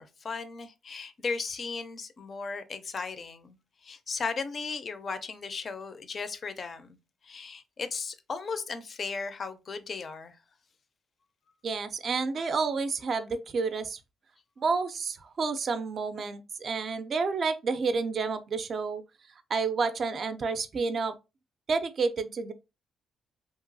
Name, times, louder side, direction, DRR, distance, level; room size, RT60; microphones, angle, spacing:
voice 1, 0.0-3.6 3.8-7.0 7.2-10.4, left 4 dB, 45° left, 0.4 m, -36 dB
voice 2, 11.6-14.0 14.6-19.0 19.5-21.1 21.7-22.5, right 4 dB, 50° right, 0.4 m, -30 dB
2.9 x 2.2 x 2.6 m
cardioid pair, 90°, 0 cm